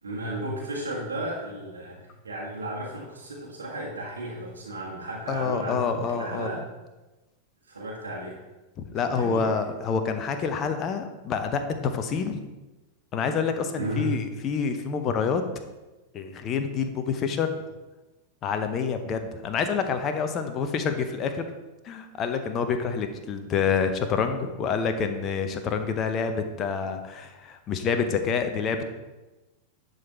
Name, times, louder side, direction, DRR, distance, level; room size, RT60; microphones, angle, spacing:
voice 1, 0.0-6.7 7.6-8.4 8.9-9.6 13.7-14.2, right 1 dB, 75° right, -4 dB, 1.6 m, -34 dB
voice 2, 5.3-6.5 8.9-12.4 13.1-15.4 16.1-17.5 18.4-21.5 21.8-28.8, left 6 dB, 30° left, 7 dB, 0.8 m, -27 dB
11.0 x 4.0 x 4.3 m, 1.1 s
figure-of-eight pair, 90°, 0 cm